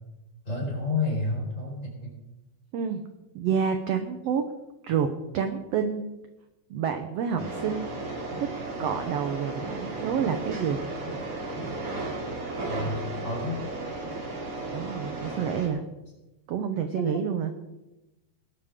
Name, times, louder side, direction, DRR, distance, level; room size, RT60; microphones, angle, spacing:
voice 1, 0.5-2.2 12.5-13.6 16.9-17.3, left 3 dB, 20° left, -2 dB, 5.2 m, -30 dB
voice 2, 2.7-3.0 3.3-4.5 4.8-6.1 6.7-7.9 8.4-8.5 8.8-10.9 14.7-15.8 16.5-17.5, right 7 dB, 70° right, 7 dB, 1.7 m, -28 dB
sound 1, 7.4-15.7, right 2 dB, 45° right, 3.7 m, -34 dB
20.5 x 12.0 x 3.7 m, 1.0 s
omnidirectional pair, 3.7 m